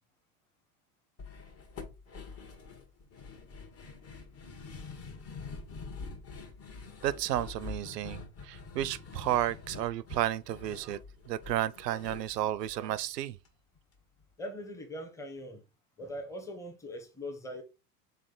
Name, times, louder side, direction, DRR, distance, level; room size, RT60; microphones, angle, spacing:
sound 1, 1.2-13.5 13.7-13.8 14.2-14.3, left 4 dB, 30° left, 1.2 m, -46 dB
voice 1, 7.0-11.0 11.3-13.4, right 13 dB, 80° right, 0.6 m, -32 dB
voice 2, 14.4-15.6 16.0-17.6, equal, 5° left, 0.8 m, -41 dB
3.6 x 3.2 x 3.8 m
hypercardioid pair, 90°, 48 cm